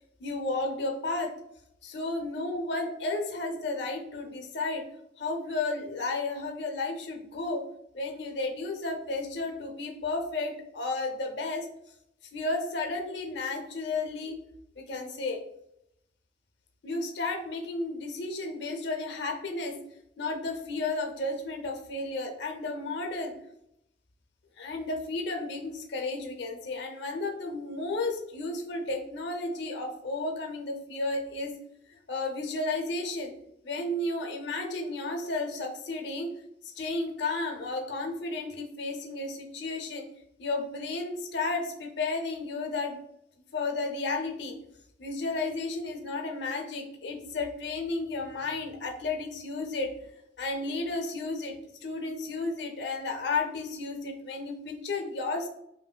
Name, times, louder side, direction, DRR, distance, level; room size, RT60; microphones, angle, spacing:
voice 1, 0.2-1.3 1.8-4.8 5.2-7.6 7.9-11.7 12.3-14.4 14.8-15.4 16.8-19.8 20.2-23.4 24.6-31.5 31.9-33.3 33.6-36.3 36.6-40.1 40.4-43.0 43.5-44.6 45.0-49.9 50.4-51.6 51.8-55.5, left 3 dB, 65° left, 4 dB, 0.6 m, -33 dB
5.4 x 2.5 x 2.2 m, 0.79 s
head